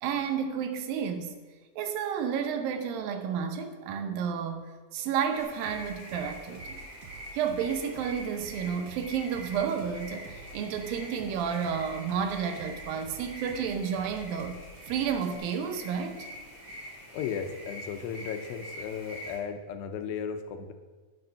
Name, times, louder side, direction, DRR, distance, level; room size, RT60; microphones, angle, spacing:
voice 1, 0.0-1.4 1.8-6.8 7.3-14.6 14.9-16.3, right 7 dB, 80° right, 7 dB, 2.6 m, -31 dB
sound 1, 5.3-19.4, equal, 30° right, 3.6 m, -45 dB
sound 2, 5.4-15.4, right 5 dB, 65° right, 1.6 m, -49 dB
voice 2, 17.1-20.7, left 7 dB, 90° left, 7 dB, 2.6 m, -35 dB
10.5 x 7.1 x 5.7 m, 1.3 s
omnidirectional pair, 4.1 m